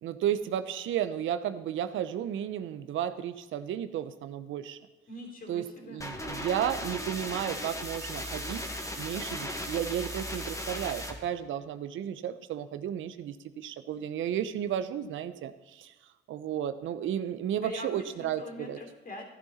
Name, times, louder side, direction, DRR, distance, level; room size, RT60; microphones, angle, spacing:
voice 1, 0.0-4.8 5.5-15.9 16.3-18.8, right 10 dB, 80° right, 12 dB, 0.9 m, -33 dB
voice 2, 5.1-6.0 17.6-19.2, left 2 dB, 45° left, 1 dB, 3.8 m, -43 dB
sound 1, 6.0-11.1, equal, 15° left, 2.0 m, -37 dB
15.0 x 11.0 x 4.2 m, 1.2 s
cardioid pair, 90°, 20 cm